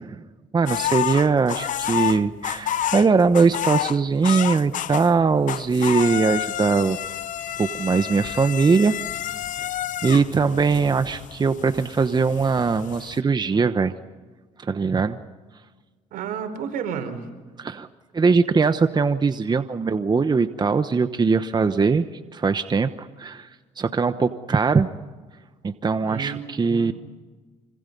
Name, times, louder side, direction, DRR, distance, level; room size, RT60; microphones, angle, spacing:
voice 1, 0.5-7.0 7.6-9.2 10.0-13.9 14.6-15.2 17.6-17.9 18.1-22.1 22.3-23.5 23.8-24.9 25.6-26.9, right 4 dB, 30° right, 10 dB, 1.1 m, -21 dB
sound 1, 0.7-5.2 5.5-13.2, left 12 dB, 65° left, 0.8 m, -29 dB
voice 2, 16.1-17.3 26.0-26.9, right 7 dB, 80° right, 6 dB, 4.7 m, -31 dB
26.0 x 25.5 x 5.5 m, 1.3 s
cardioid pair, 80°, 15 cm